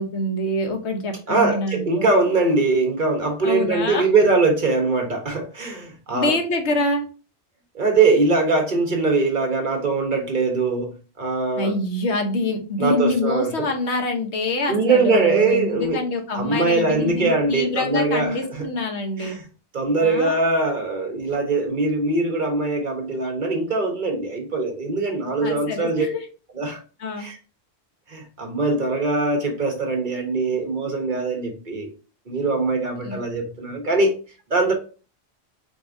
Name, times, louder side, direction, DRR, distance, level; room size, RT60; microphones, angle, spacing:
voice 1, 0.0-2.1 3.4-4.1 6.1-7.1 11.6-19.4 20.0-20.5 25.4-26.3 27.0-27.3 33.0-33.2, left 2 dB, 85° left, 1.2 m, -25 dB
voice 2, 1.3-6.3 7.7-10.9 11.2-11.7 12.8-13.7 14.7-16.0 16.3-18.7 19.2-19.4 19.7-26.1 26.6-26.8 27.2-27.4 28.1-31.9 32.3-34.2 34.5-34.7, right 3 dB, 50° right, 1.1 m, -22 dB
4.5 x 4.3 x 2.6 m
omnidirectional pair, 1.1 m